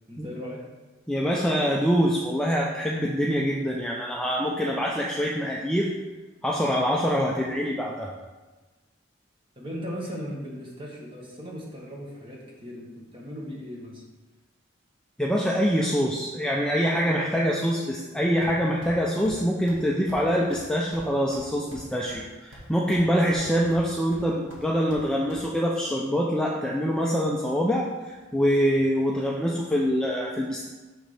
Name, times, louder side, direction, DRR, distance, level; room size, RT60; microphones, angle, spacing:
voice 1, 0.1-0.6 9.6-14.0, equal, 25° right, -3 dB, 1.5 m, -37 dB
voice 2, 1.1-5.9 6.4-8.1 15.2-30.7, equal, 5° left, -3 dB, 0.4 m, -25 dB
sound 1, 18.4-19.0 19.2-19.4 19.7-19.8 20.1-20.2 20.5-20.6 20.9-22.2 22.5-23.1 23.3-23.9 24.1-25.4, right 1 dB, 70° right, 1.6 m, -45 dB
6.4 x 6.2 x 3.4 m, 1.2 s
head